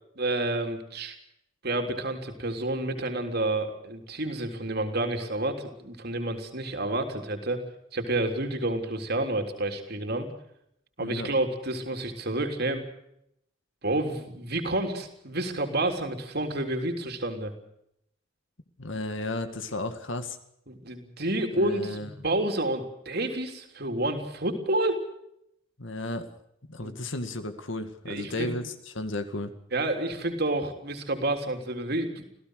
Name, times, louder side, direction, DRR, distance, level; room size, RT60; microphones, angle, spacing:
voice 1, 0.2-1.2 1.6-7.6 7.9-10.3 11.0-12.8 13.8-17.5 20.7-25.0 26.8-27.0 28.1-28.5 29.7-32.2, right 1 dB, 50° right, 5 dB, 3.7 m, -29 dB
voice 2, 11.0-11.3 18.8-20.4 21.6-22.1 25.8-26.3 26.7-29.5, left 2 dB, 60° left, 8 dB, 2.1 m, -33 dB
27.5 x 16.5 x 6.5 m, 0.76 s
head